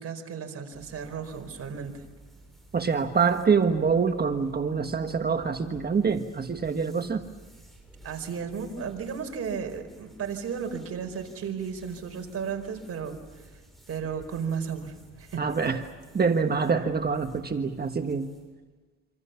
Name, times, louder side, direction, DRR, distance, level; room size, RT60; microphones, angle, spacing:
voice 1, 0.0-2.0 8.0-13.1 13.4-13.5 13.9-15.4, right 6 dB, 50° right, 4 dB, 4.9 m, -34 dB
sound 1, 0.7-18.5, right 1 dB, ahead, 7.6 m, -53 dB
voice 2, 2.7-7.2 15.4-15.8 16.1-18.3, right 5 dB, 30° right, 6 dB, 1.5 m, -25 dB
27.0 x 26.5 x 7.1 m, 1.3 s
cardioid pair, 100°, 31 cm